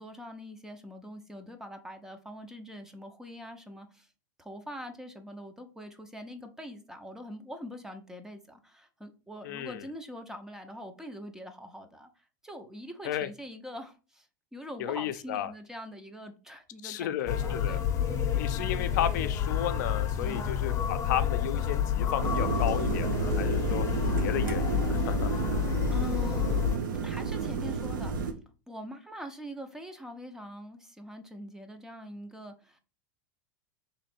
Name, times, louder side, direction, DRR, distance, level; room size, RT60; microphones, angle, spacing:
voice 1, 0.0-4.1 4.4-12.1 12.4-14.3 14.5-17.9 18.1-18.4 20.2-20.6 25.9-26.5 27.0-28.1 28.7-32.8, equal, 5° right, 0.6 m, -43 dB
voice 2, 9.4-9.8 13.0-13.3 14.8-15.5 16.8-17.8 18.3-23.9 24.2-25.3, left 11 dB, 70° left, 0.5 m, -33 dB
sound 1, 17.3-26.8, left 9 dB, 30° left, 0.8 m, -29 dB
sound 2, 22.2-28.3, right 5 dB, 90° right, 0.7 m, -31 dB
3.6 x 3.1 x 4.3 m
supercardioid pair, 125°, 10 cm